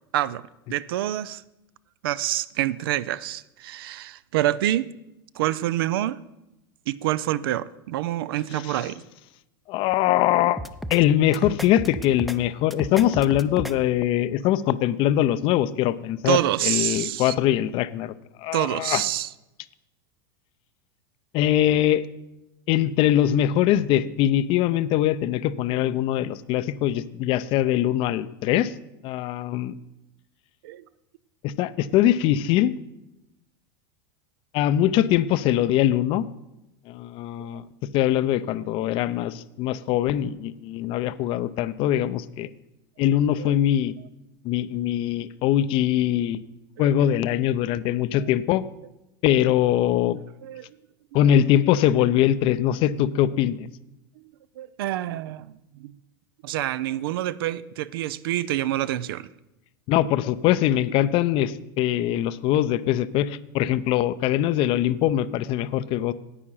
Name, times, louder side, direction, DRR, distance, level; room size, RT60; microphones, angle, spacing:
voice 1, 0.7-1.4 2.0-4.9 5.3-6.2 6.9-9.0 16.3-17.3 18.5-19.3 30.6-30.8 43.4-43.6 46.8-47.1 48.1-48.3 49.9-50.0 50.4-50.7 51.2-51.3 51.7-51.8 54.6-56.0 56.4-59.3, right 13 dB, 75° right, 17 dB, 0.5 m, -27 dB
voice 2, 9.7-10.6 10.9-16.4 16.6-18.1 18.4-19.0 21.3-22.0 22.7-28.7 29.0-29.7 31.4-32.7 34.5-36.3 36.9-37.6 37.9-42.5 43.0-43.9 44.4-46.4 46.8-48.6 49.2-50.2 51.1-53.7 59.9-66.1, left 12 dB, 45° left, 16 dB, 0.5 m, -22 dB
sound 1, 10.6-11.0 11.3-12.4 12.7-13.7, equal, ahead, 0.5 m, -34 dB
9.9 x 8.6 x 5.6 m, 0.93 s
supercardioid pair, 120°, 12 cm